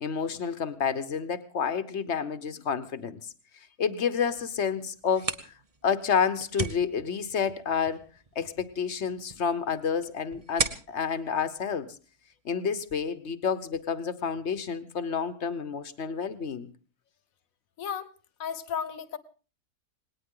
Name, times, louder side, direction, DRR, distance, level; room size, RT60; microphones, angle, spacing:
voice 1, 0.0-3.3 3.8-5.5 5.8-8.0 8.3-11.9 12.4-16.7, left 6 dB, 50° left, 13 dB, 1.2 m, -29 dB
sound 1, 4.9-12.5, right 3 dB, 30° right, 0.9 m, -38 dB
voice 2, 17.8-18.1 18.4-19.2, left 7 dB, 70° left, 15 dB, 1.5 m, -34 dB
19.0 x 18.5 x 3.8 m, 0.37 s
omnidirectional pair, 1.6 m